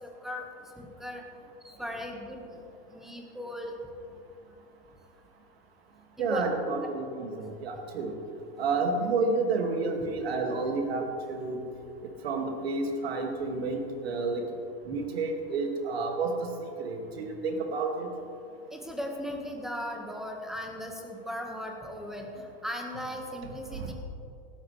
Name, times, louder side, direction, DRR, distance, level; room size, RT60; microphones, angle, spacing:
voice 1, 0.0-0.4 0.8-1.2 1.6-2.5 2.9-3.7 6.2-6.4 18.7-23.9, equal, ahead, 1 dB, 1.5 m, -37 dB
voice 2, 6.2-8.1 8.6-11.6 12.2-14.4 14.8-18.1 23.4-23.9, right 3 dB, 85° right, 3 dB, 2.3 m, -30 dB
17.5 x 12.5 x 3.3 m, 2.7 s
supercardioid pair, 140°, 30 cm